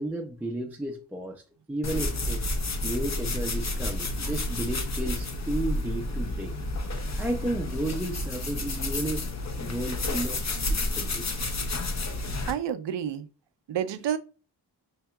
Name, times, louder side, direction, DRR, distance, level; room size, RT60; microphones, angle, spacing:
voice 1, 0.0-1.4 1.7-2.4 2.8-6.5 7.1-9.3 9.6-11.6, right 1 dB, 5° right, 0.5 m, -33 dB
sound 1, 1.8-12.5, left 2 dB, 35° left, 0.8 m, -30 dB
voice 2, 12.5-13.3 13.7-14.2, right 9 dB, 70° right, 0.6 m, -29 dB
5.5 x 2.7 x 2.3 m
cardioid pair, 60°, 45 cm